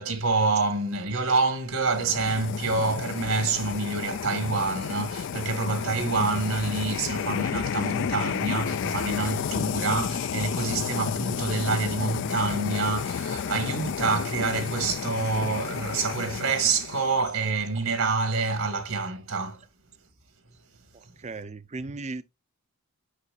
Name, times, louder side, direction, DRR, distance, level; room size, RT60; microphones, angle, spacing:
voice 1, 0.0-19.6 21.1-21.2, right 3 dB, 75° right, 1.6 m, -27 dB
sound 1, 1.8-17.2, left 7 dB, 55° left, 0.3 m, -31 dB
voice 2, 20.9-22.2, right 3 dB, 30° right, 0.5 m, -37 dB
8.3 x 6.2 x 2.3 m
head